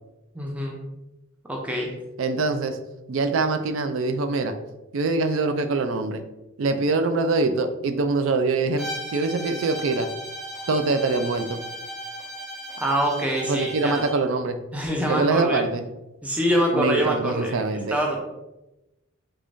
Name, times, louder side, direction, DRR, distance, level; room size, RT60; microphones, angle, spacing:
voice 1, 0.3-0.8 1.5-1.9 12.8-14.1 14.7-15.7 16.2-17.5 17.9-18.2, equal, 5° right, -1 dB, 0.5 m, -25 dB
voice 2, 2.2-2.8 3.1-4.5 4.9-6.2 6.6-10.1 10.7-11.6 13.4-14.6 15.1-15.8 16.7-18.0, right 3 dB, 65° right, 8 dB, 0.4 m, -24 dB
Bowed string instrument, 8.8-14.2, right 1 dB, 40° right, 0.9 m, -36 dB
3.5 x 3.4 x 2.5 m, 0.96 s
head